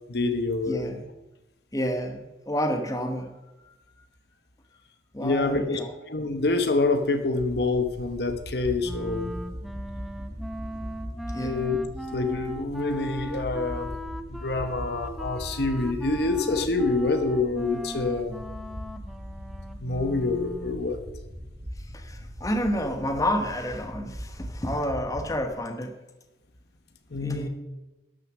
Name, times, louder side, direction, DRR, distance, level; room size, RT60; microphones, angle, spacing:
voice 1, 0.1-0.9 5.2-5.8 6.1-9.3 11.4-11.8 12.1-13.9 14.3-18.4 19.8-21.0 27.1-27.5, left 3 dB, 60° left, 8 dB, 1.0 m, -26 dB
voice 2, 0.6-1.1 1.7-3.3 3.6-3.7 5.1-5.9 11.3-11.6 21.8-25.9 27.2-27.5, equal, 20° left, 5 dB, 1.0 m, -29 dB
sound 1, 7.6-25.5, equal, 35° right, 1.3 m, -40 dB
Wind instrument woodwind instrument, 8.8-20.9, equal, ahead, 0.6 m, -38 dB
12.0 x 6.7 x 6.1 m, 1.0 s
head